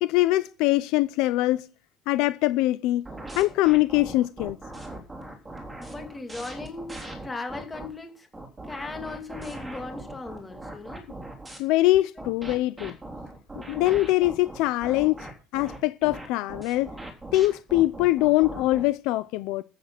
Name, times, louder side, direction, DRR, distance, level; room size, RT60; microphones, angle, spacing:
voice 1, 0.0-1.6 2.1-3.1 3.4-4.6 11.6-12.9 13.7-15.2 15.5-16.9 17.3-19.6, left 17 dB, 70° left, 0.6 m, -23 dB
sound 1, 3.0-7.9 8.3-11.6 12.2-18.9, right 2 dB, 10° right, 3.6 m, -40 dB
voice 2, 5.7-8.3 8.6-11.1 12.2-12.3, left 3 dB, 15° left, 2.3 m, -38 dB
13.5 x 8.5 x 6.0 m
cardioid pair, 145°, 0 cm